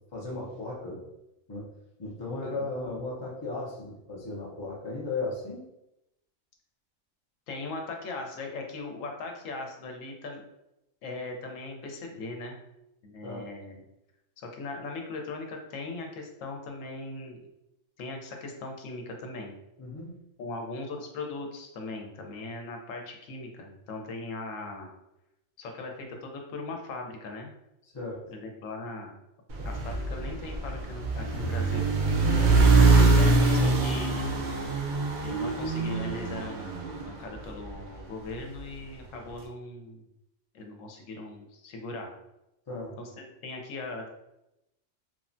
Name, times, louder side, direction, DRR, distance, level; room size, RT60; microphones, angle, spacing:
voice 1, 0.1-1.0 1.5-1.7 2.0-5.6 13.2-13.5 19.8-20.1 27.8-28.2 32.3-32.6 42.7-42.9, left 3 dB, 45° left, -5 dB, 0.3 m, -36 dB
voice 2, 7.5-10.4 11.0-12.6 13.0-13.8 14.4-17.4 18.0-19.5 20.4-24.9 25.6-27.5 28.3-29.1 29.6-31.9 32.6-34.3 35.2-36.8 37.0-40.0 40.5-42.1 43.0-44.1, left 2 dB, 85° left, 2 dB, 1.0 m, -39 dB
sound 1, 29.5-37.9, right 3 dB, 65° right, 0.4 m, -24 dB
3.1 x 2.1 x 2.5 m, 0.88 s
omnidirectional pair, 1.3 m